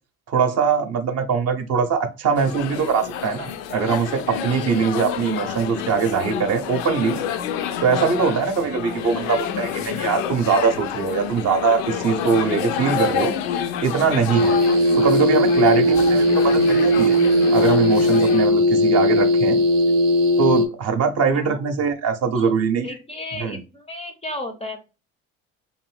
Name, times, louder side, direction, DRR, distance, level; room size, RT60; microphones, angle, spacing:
voice 1, 0.3-7.2 7.8-13.3 13.8-14.6 14.9-17.2 17.5-19.6 20.4-22.9 23.4-23.6, right 6 dB, 40° right, 0.7 m, -22 dB
sound 1, 2.4-18.5, left 8 dB, 70° left, 0.5 m, -28 dB
sound 2, 14.3-20.7, left 1 dB, 80° right, 0.6 m, -18 dB
voice 2, 21.3-21.6 22.3-22.5 22.8-24.8, left 1 dB, 15° left, 0.5 m, -34 dB
2.6 x 2.6 x 3.2 m
hypercardioid pair, 65°, 40 cm